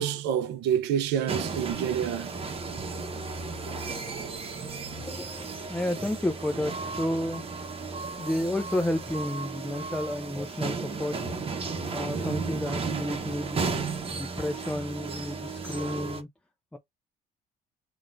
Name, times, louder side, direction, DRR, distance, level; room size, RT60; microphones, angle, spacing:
voice 1, 0.0-2.3, right 9 dB, 85° right, 0.6 m, -28 dB
sound 1, 1.3-16.2, right 4 dB, 35° right, 0.9 m, -34 dB
voice 2, 4.9-7.4 8.2-11.3 11.9-13.8 14.1-16.3 16.7-16.8, left 1 dB, 5° left, 0.5 m, -31 dB
5.9 x 2.5 x 2.5 m
cardioid pair, 110°, 17 cm